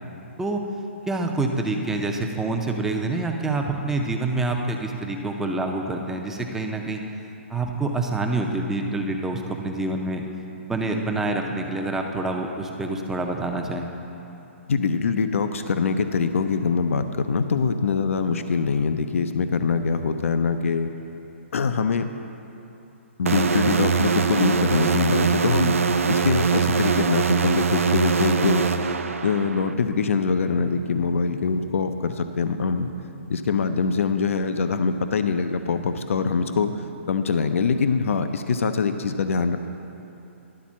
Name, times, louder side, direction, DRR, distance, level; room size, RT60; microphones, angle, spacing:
voice 1, 1.1-7.0 7.5-10.2 10.6-13.9, right 2 dB, 5° right, 2 dB, 0.5 m, -26 dB
voice 2, 14.7-20.9 21.5-22.1 23.2-25.8 26.1-28.6 29.2-32.9 33.3-39.6, left 5 dB, 80° left, 9 dB, 0.5 m, -23 dB
sound 1, 23.3-29.7, right 5 dB, 85° right, 0.4 m, -22 dB
11.5 x 4.2 x 7.3 m, 2.9 s
hypercardioid pair, 150°, 7 cm